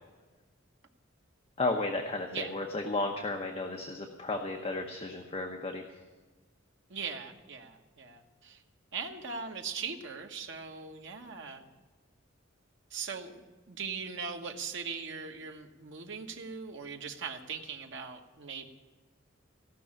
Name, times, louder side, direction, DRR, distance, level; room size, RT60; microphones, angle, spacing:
voice 1, 1.6-5.8, left 2 dB, 30° left, 3 dB, 0.9 m, -33 dB
voice 2, 6.9-8.6 8.9-11.7 12.9-18.7, right 5 dB, 65° right, 3 dB, 1.2 m, -40 dB
16.0 x 6.2 x 8.7 m, 1.3 s
head